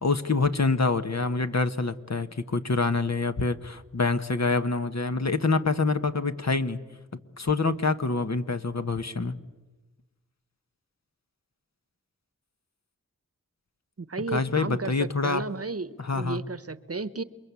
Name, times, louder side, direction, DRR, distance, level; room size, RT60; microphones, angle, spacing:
voice 1, 0.0-6.8 7.4-9.4 14.3-15.5 16.0-16.4, left 3 dB, 55° left, 9 dB, 1.3 m, -26 dB
voice 2, 14.0-17.2, right 3 dB, 45° right, 16 dB, 1.0 m, -33 dB
28.0 x 22.5 x 8.4 m, 1.2 s
wide cardioid pair, 55°, 32 cm